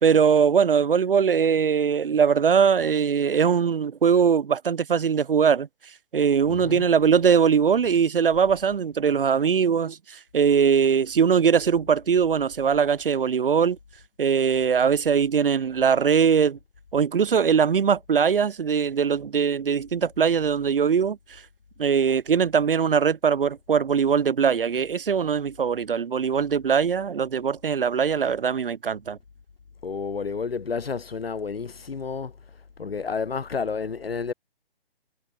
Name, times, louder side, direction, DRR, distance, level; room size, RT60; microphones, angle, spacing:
voice 1, 0.0-5.7 6.1-13.8 14.2-16.6 16.9-21.2 21.8-29.2, right 6 dB, 60° right, 2.6 m, -21 dB
voice 2, 6.5-6.9 29.8-32.3 32.8-34.3, left 5 dB, 70° left, 6.6 m, -30 dB
figure-of-eight pair, 145°, 31 cm